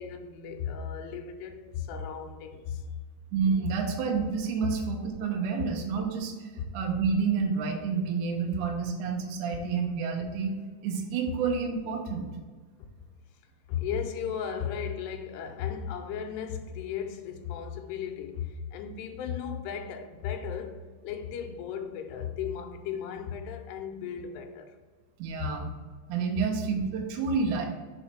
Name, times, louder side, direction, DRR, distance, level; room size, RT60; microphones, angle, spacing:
voice 1, 0.0-2.9 3.7-3.8 4.6-4.8 6.6-6.7 13.7-24.8 25.4-25.6, left 8 dB, 80° left, 2.6 m, -35 dB
voice 2, 3.3-6.5 6.7-10.5 10.8-12.3 25.2-25.7 26.1-27.7, right 5 dB, 85° right, 1.8 m, -29 dB
5.6 x 4.7 x 4.3 m
omnidirectional pair, 4.9 m